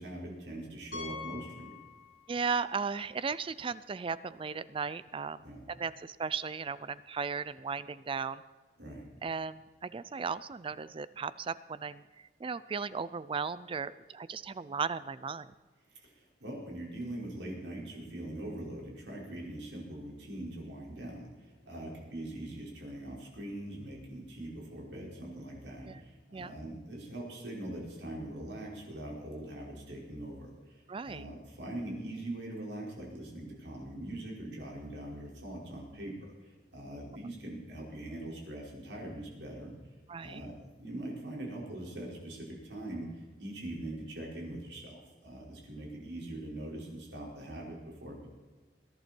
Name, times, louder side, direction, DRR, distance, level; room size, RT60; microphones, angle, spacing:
voice 1, 0.0-1.8 5.4-5.6 8.8-9.1 15.9-36.1 36.7-39.7 40.2-40.5 40.8-48.3, right 1 dB, 85° right, -2 dB, 5.1 m, -42 dB
Piano, 0.9-2.5 2.8-2.9 3.5-3.6 3.9-4.0 6.0-6.1, left 4 dB, 60° left, 6.1 m, -45 dB
voice 2, 2.3-8.4 9.2-15.5 25.8-26.0 26.3-26.5 30.9-31.3 40.1-40.4, right 5 dB, 30° right, 17 dB, 0.4 m, -36 dB
21.5 x 11.0 x 4.5 m, 1.3 s
head